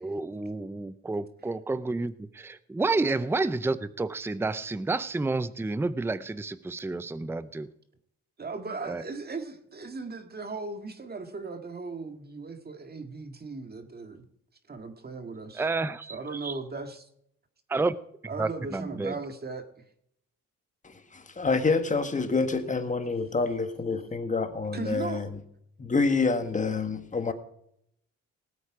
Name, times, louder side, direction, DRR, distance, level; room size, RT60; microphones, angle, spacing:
voice 1, 0.0-7.7 8.9-9.0 15.6-16.5 17.7-17.9 18.4-19.1, right 3 dB, 10° right, 0.6 m, -30 dB
voice 2, 8.4-14.2 14.7-15.7 16.1-17.1 18.3-19.7 24.7-25.3, right 3 dB, 30° right, 2.0 m, -37 dB
voice 3, 20.8-25.3 25.8-27.3, left 4 dB, 25° left, 1.7 m, -27 dB
19.0 x 8.3 x 4.9 m
cardioid pair, 90°, 30 cm